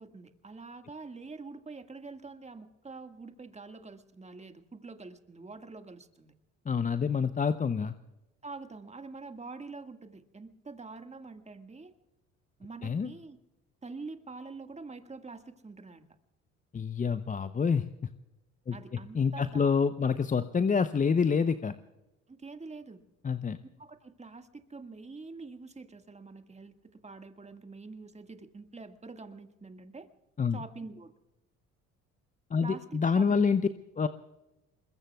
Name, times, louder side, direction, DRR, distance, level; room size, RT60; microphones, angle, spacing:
voice 1, 0.0-6.3 8.4-11.9 12.6-13.4 13.8-16.1 18.7-19.8 22.3-23.0 23.8-26.8 27.0-30.1 30.5-31.1 32.6-33.6, right 3 dB, 20° right, 7 dB, 1.8 m, -45 dB
voice 2, 6.7-7.9 12.8-13.1 16.7-17.8 18.7-18.8 19.1-21.7 23.2-23.6 30.4-30.6 32.5-33.6 34.0-34.1, left 5 dB, 20° left, 12 dB, 0.7 m, -27 dB
27.5 x 22.0 x 2.3 m, 0.97 s
hypercardioid pair, 60°, 35 cm